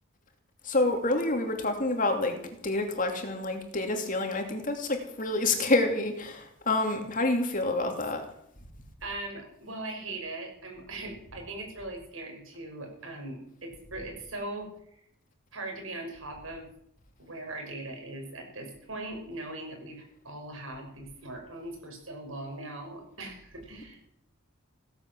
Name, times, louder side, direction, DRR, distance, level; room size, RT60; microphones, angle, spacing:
voice 1, 0.6-8.2, left 2 dB, 40° left, 4 dB, 2.9 m, -28 dB
voice 2, 9.0-14.7 15.5-16.7 17.2-24.0, right 2 dB, 80° right, 3 dB, 5.8 m, -40 dB
16.5 x 10.5 x 7.6 m, 0.72 s
head